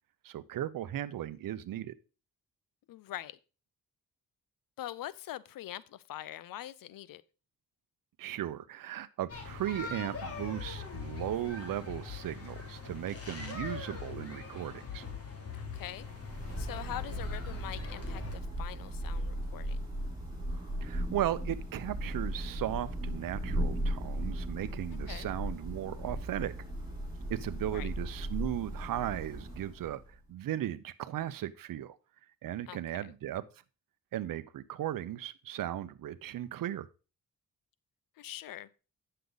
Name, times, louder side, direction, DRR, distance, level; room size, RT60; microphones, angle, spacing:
voice 1, 0.2-1.9 8.2-15.0 20.8-26.5 27.3-32.0 32.4-33.4 34.1-36.9, right 12 dB, 75° right, 0.7 m, -36 dB
voice 2, 2.9-3.4 4.8-7.2 15.5-16.1 16.6-19.8 25.1-25.3 27.7-27.9 32.7-33.1 38.2-38.7, left 13 dB, 80° left, 0.6 m, -43 dB
sound 1, 9.3-18.3, left 5 dB, 45° left, 2.9 m, -42 dB
Thunder / Rain, 15.8-30.2, right 1 dB, 15° right, 5.5 m, -37 dB
9.3 x 6.6 x 3.9 m
cardioid pair, 85°, 34 cm